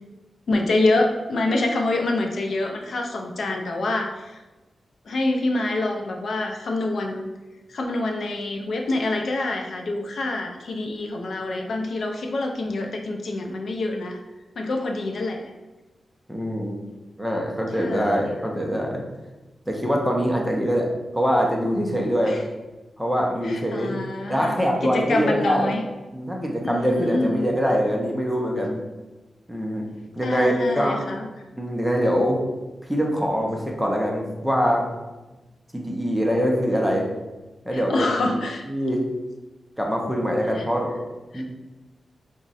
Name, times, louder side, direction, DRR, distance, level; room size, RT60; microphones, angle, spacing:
voice 1, 0.5-4.4 5.1-7.3 7.7-14.2 14.6-15.5 17.7-18.3 22.2-22.4 23.4-24.6 24.8-25.8 26.6-27.5 30.2-31.3 37.7-38.7 40.5-40.7 41.3-41.4, left 2 dB, 60° left, 2 dB, 0.4 m, -26 dB
voice 2, 16.3-16.8 17.2-19.0 19.7-20.9 21.1-22.4 23.0-25.7 26.1-28.8 29.5-29.9 30.2-31.0 31.6-32.4 32.9-34.9 35.7-37.1 37.6-38.1 38.7-39.0 39.8-40.9 41.3-41.4, equal, ahead, -1 dB, 0.5 m, -23 dB
3.5 x 2.1 x 4.0 m, 1.1 s
wide cardioid pair, 180°, 0 cm